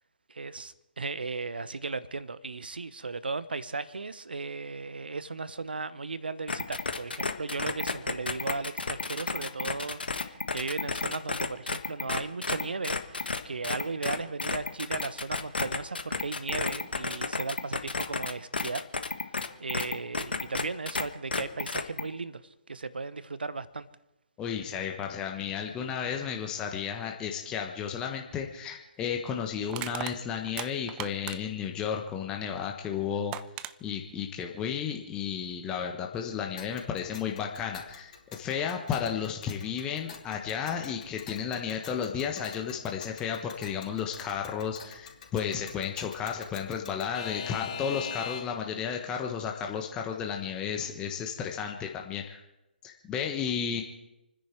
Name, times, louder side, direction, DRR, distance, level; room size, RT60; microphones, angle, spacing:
voice 1, 0.3-18.8 19.6-22.4 22.7-23.9, right 4 dB, 65° right, 16 dB, 1.1 m, -36 dB
sound 1, 6.5-21.0 21.3-22.0, left 4 dB, 65° left, 1.5 m, -31 dB
voice 2, 24.4-33.3 33.8-52.4 52.8-53.8, left 7 dB, 15° left, 2 dB, 1.3 m, -33 dB
Crushing, 28.3-28.5 29.7-31.7 32.8-32.9 33.3-33.7, right 13 dB, 15° right, 0.5 m, -38 dB
Alarm / Clock, 36.6-48.7, left 7 dB, 40° left, 2.9 m, -44 dB
29.0 x 10.5 x 4.6 m, 0.95 s
figure-of-eight pair, 135°, 6 cm